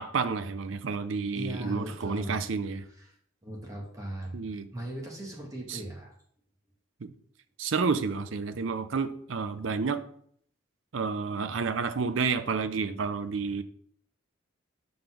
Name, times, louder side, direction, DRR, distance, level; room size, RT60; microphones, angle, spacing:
voice 1, 0.0-2.8 4.3-4.7 5.7-5.8 7.0-7.1 7.6-10.0 10.9-13.6, right 5 dB, 70° right, 11 dB, 0.5 m, -30 dB
voice 2, 1.3-2.4 3.0-3.1 3.4-4.4 4.7-6.1, right 1 dB, 15° right, -1 dB, 1.4 m, -38 dB
5.1 x 4.0 x 5.9 m, 0.64 s
head